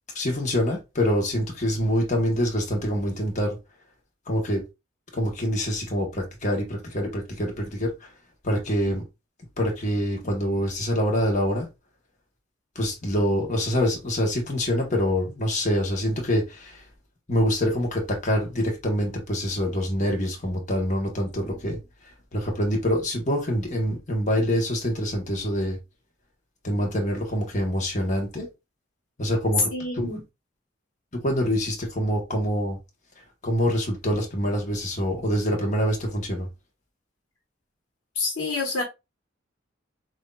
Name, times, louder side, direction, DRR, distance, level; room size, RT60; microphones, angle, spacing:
voice 1, 0.1-3.6 4.3-4.6 5.1-8.1 8.4-9.0 9.6-11.7 12.7-16.8 17.3-21.8 22.3-25.8 26.6-28.5 29.2-30.1 31.1-32.8 33.4-36.5, equal, 40° left, 1.2 m, -25 dB
voice 2, 29.7-30.2 38.1-38.8, left 3 dB, 80° left, 1.3 m, -28 dB
6.1 x 2.6 x 2.4 m
head